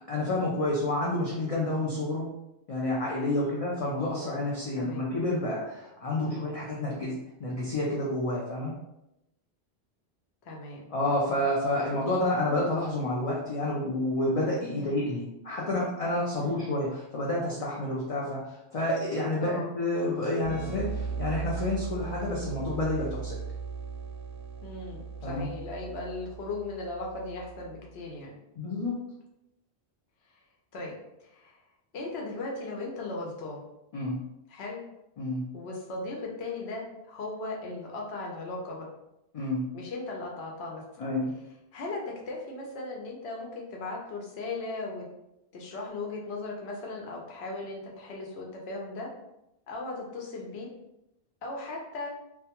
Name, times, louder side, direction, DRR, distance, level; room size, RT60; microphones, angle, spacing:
voice 1, 0.1-2.3 2.7-8.7 10.9-23.4 25.2-25.5 28.6-29.0 33.9-34.2 35.2-35.4 39.3-39.7 41.0-41.3, left 1 dB, 55° left, -5 dB, 0.4 m, -29 dB
voice 2, 6.2-6.6 10.4-10.9 14.7-15.0 16.4-16.7 19.4-19.7 24.6-28.4 30.7-31.6 31.9-33.6 34.5-34.8 35.5-38.9 39.7-40.8 41.7-45.1 45.5-49.1 49.7-50.7 51.4-52.2, left 2 dB, 75° left, -1 dB, 0.9 m, -37 dB
sound 1, 20.4-27.9, right 5 dB, 80° right, 0.8 m, -38 dB
2.2 x 2.2 x 2.8 m, 0.86 s
omnidirectional pair, 1.1 m